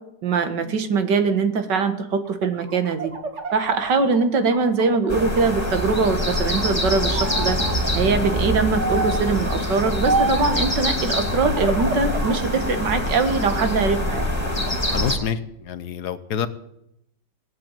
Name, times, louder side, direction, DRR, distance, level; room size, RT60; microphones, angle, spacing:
voice 1, 0.2-3.1 3.5-7.6 7.9-14.3, right 4 dB, 75° right, 9 dB, 2.0 m, -22 dB
window finger rub, 2.3-5.5 5.9-6.7 7.1-7.8 8.8-9.3 10.1-10.6 11.3-12.4 12.9-13.8 14.3-15.0, right 3 dB, 45° right, 1.8 m, -29 dB
sound 1, 5.1-15.2, left 1 dB, 10° left, 2.5 m, -24 dB
voice 2, 14.9-16.5, left 8 dB, 65° left, 13 dB, 1.4 m, -27 dB
18.0 x 8.1 x 8.9 m, 0.79 s
omnidirectional pair, 1.9 m